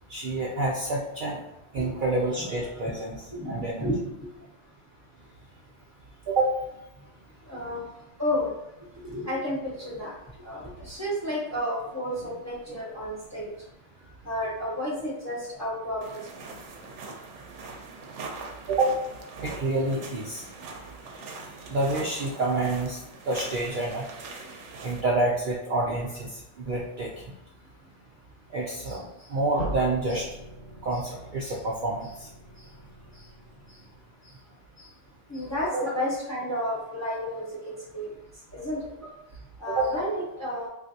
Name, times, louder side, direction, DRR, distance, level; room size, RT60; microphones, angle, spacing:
voice 1, 0.1-1.4 1.7-3.9 6.3-6.5 12.2-12.3 18.7-18.9 19.4-20.4 21.7-23.0 23.3-24.1 24.8-27.3 28.5-30.3 30.8-32.3 32.6-32.7 33.2-33.3 34.8-34.9 35.3-35.4 35.7-35.9 39.7-39.9, right 2 dB, 60° right, -4 dB, 0.5 m, -28 dB
voice 2, 3.3-4.3 7.5-7.8 8.2-8.5 9.0-10.1 10.4-13.5 14.2-16.0 35.3-38.1 38.5-38.8 39.6-40.7, equal, 15° left, -6 dB, 0.7 m, -31 dB
sound 1, 16.0-25.0, right 3 dB, 80° right, 0.9 m, -42 dB
sound 2, 29.6-34.4, right 1 dB, 55° left, 1.2 m, -41 dB
3.3 x 2.5 x 2.7 m, 0.87 s
omnidirectional pair, 1.2 m